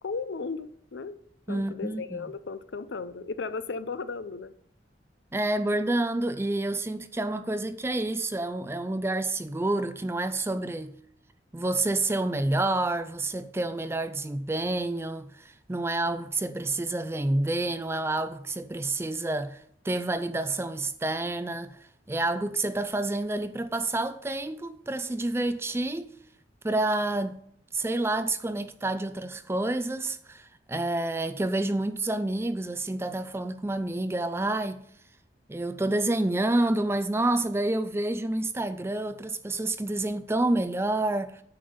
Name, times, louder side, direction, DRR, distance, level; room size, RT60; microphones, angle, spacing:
voice 1, 0.0-1.2 1.5-4.5, left 4 dB, 65° left, 0.5 m, -35 dB
voice 2, 1.5-2.2 5.3-10.9 11.5-19.6 19.8-21.8 22.1-26.1 26.6-27.4 27.7-34.8 35.5-41.4, right 2 dB, 15° right, 0.4 m, -28 dB
8.7 x 5.2 x 5.5 m
head